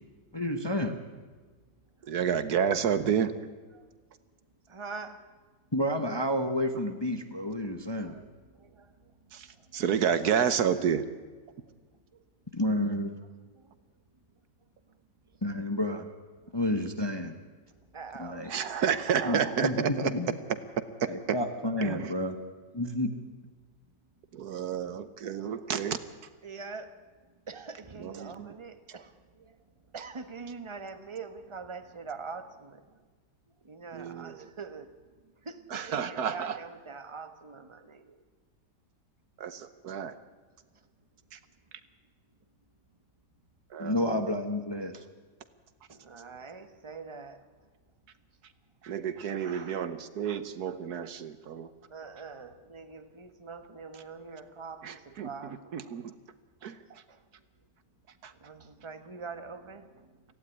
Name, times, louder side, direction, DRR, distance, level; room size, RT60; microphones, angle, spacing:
voice 1, 0.3-1.0 5.7-8.1 12.5-13.2 15.4-16.1 16.5-17.4 18.2-18.5 19.2-20.3 21.1-22.4 22.7-23.1 43.8-45.0, left 1 dB, 20° left, 7 dB, 1.0 m, -30 dB
voice 2, 2.0-3.3 9.3-11.0 18.5-20.1 21.0-21.4 21.8-22.1 24.3-26.0 28.0-28.5 33.9-34.5 35.7-36.6 39.4-40.2 41.3-41.4 43.7-44.3 48.8-51.7 54.8-55.3 55.7-56.1 56.6-57.0 58.2-58.3, right 7 dB, 65° right, 13 dB, 1.4 m, -30 dB
voice 3, 4.7-5.4 7.8-9.8 11.6-11.8 12.1-12.2 13.5-13.8 14.6-15.4 16.4-16.6 17.7-19.4 25.4-25.6 26.4-33.0 33.6-34.9 35.2-38.2 40.7-40.9 44.9-45.1 45.9-47.7 49.3-49.8 51.9-55.8 57.1-57.3 58.3-60.3, right 4 dB, 20° right, 10 dB, 1.1 m, -45 dB
17.5 x 15.5 x 9.9 m, 1.4 s
omnidirectional pair, 1.8 m